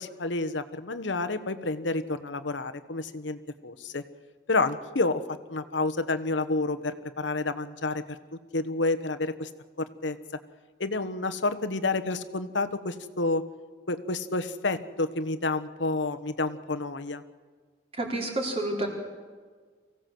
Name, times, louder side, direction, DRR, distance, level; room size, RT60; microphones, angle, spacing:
voice 1, 0.0-4.0 4.5-8.2 8.5-9.5 9.8-10.2 10.8-13.4 13.9-17.2, left 3 dB, 90° left, 11 dB, 1.2 m, -29 dB
voice 2, 18.0-18.9, right 2 dB, 35° right, 0 dB, 4.3 m, -29 dB
24.0 x 16.5 x 7.8 m, 1.5 s
head